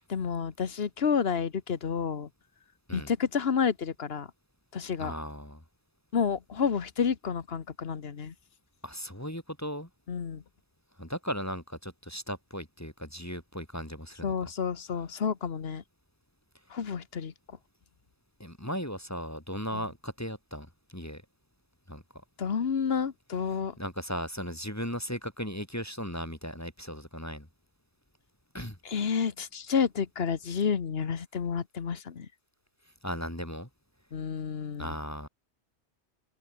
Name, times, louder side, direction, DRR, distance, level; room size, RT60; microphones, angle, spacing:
voice 1, 0.1-2.3 2.9-4.3 4.7-5.1 6.1-8.3 10.1-10.4 14.2-15.8 16.7-17.3 19.7-19.8 22.4-23.7 28.8-32.3 34.1-34.9, left 6 dB, 65° left, 1.4 m, -30 dB
voice 2, 5.0-5.6 8.8-9.9 11.0-14.5 18.4-20.7 20.9-21.2 21.9-22.0 23.8-27.5 28.5-28.8 33.0-33.7 34.8-35.3, equal, 15° left, 3.4 m, -37 dB
omnidirectional pair, 1.1 m